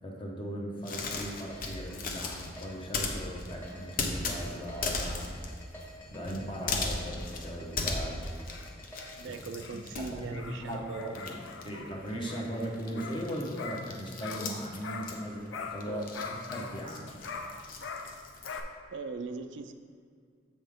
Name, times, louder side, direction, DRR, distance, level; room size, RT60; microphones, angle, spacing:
voice 1, 0.0-5.3 6.1-8.2 9.2-9.3 9.7-17.4, equal, 30° left, -1 dB, 1.0 m, -38 dB
sound 1, 0.8-10.8 11.1-18.6, left 3 dB, 50° left, 0.7 m, -37 dB
sound 2, 1.0-9.4, equal, 10° left, 1.2 m, -50 dB
sound 3, 8.2-15.2 15.5-18.6, left 4 dB, 90° left, 0.6 m, -43 dB
voice 2, 9.2-11.2 15.9-16.3 18.9-19.7, right 4 dB, 80° right, 8 dB, 0.4 m, -40 dB
7.5 x 5.5 x 3.6 m, 2.1 s
head